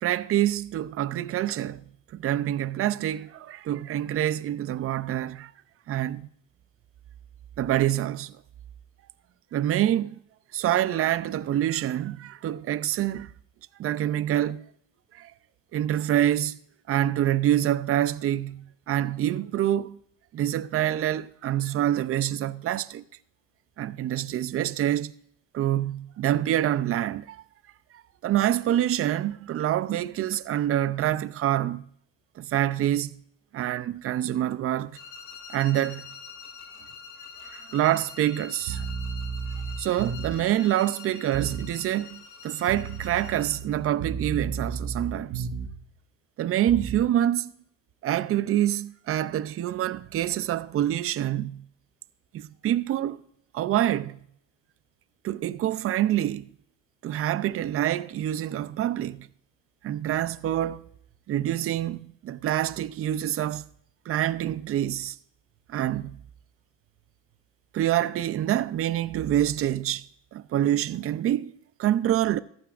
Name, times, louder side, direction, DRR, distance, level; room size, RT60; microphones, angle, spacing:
voice 1, 0.0-1.8 2.1-5.5 5.9-6.2 7.6-8.3 9.5-10.2 10.5-13.3 13.8-14.6 15.1-15.3 15.7-16.6 16.9-20.0 20.3-23.0 23.8-25.1 25.5-27.4 28.2-31.8 32.4-33.1 33.5-34.9 35.5-36.1 37.4-38.8 39.8-45.5 46.4-47.5 48.0-51.6 52.3-53.2 53.5-54.2 55.2-56.4 57.0-59.3 59.8-60.8 61.3-63.6 64.1-65.2 65.7-66.2 67.7-70.0 70.3-71.5 71.8-72.4, right 12 dB, 35° right, 0.5 m, -26 dB
sound 1, 34.9-43.7, left 6 dB, 50° left, 3.0 m, -45 dB
sound 2, 38.6-40.5 41.3-41.7 42.7-45.9 46.7-47.1, right 6 dB, 65° right, 1.2 m, -33 dB
14.5 x 12.5 x 2.5 m
supercardioid pair, 105°, 38 cm